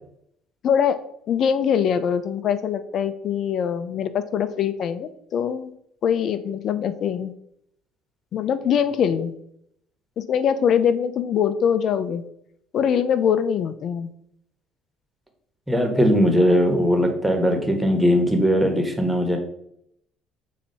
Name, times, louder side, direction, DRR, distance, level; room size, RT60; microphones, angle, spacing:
voice 1, 0.6-1.0 1.3-5.7 6.0-7.3 8.3-9.4 10.2-12.2 12.7-14.1, left 8 dB, 55° left, 11 dB, 0.6 m, -23 dB
voice 2, 15.7-19.4, equal, 5° right, 4 dB, 1.5 m, -19 dB
7.3 x 2.9 x 5.4 m, 0.73 s
supercardioid pair, 90°, 0 cm